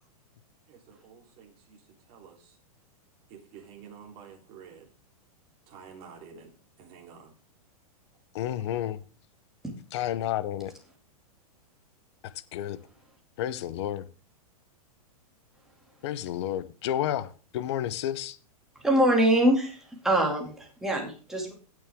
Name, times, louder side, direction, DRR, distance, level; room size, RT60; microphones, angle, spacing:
voice 1, 0.7-1.8 2.1-2.6 3.3-4.9 5.7-6.5 6.8-7.3, right 7 dB, 30° right, 0 dB, 3.5 m, -49 dB
voice 2, 8.3-9.0 9.9-10.7 12.2-12.8 13.4-14.0 16.0-18.4, left 11 dB, 45° left, 14 dB, 0.8 m, -31 dB
voice 3, 18.8-21.5, right 1 dB, ahead, -1 dB, 2.5 m, -24 dB
17.0 x 6.4 x 3.6 m, 0.37 s
supercardioid pair, 165°, 19 cm